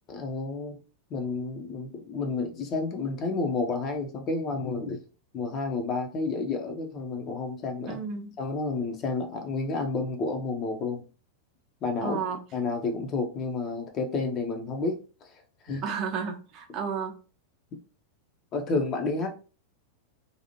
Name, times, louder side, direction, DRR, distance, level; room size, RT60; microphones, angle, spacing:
voice 1, 0.1-0.8 1.1-5.0 5.3-8.0 8.4-11.0 11.8-12.2 12.5-15.3 15.6-15.8 18.5-19.3, left 3 dB, 30° left, 4 dB, 0.6 m, -30 dB
voice 2, 7.9-8.3 12.0-12.4 15.8-17.1, right 6 dB, 35° right, 4 dB, 0.6 m, -32 dB
2.7 x 2.4 x 2.8 m, 0.34 s
figure-of-eight pair, 90°, 0 cm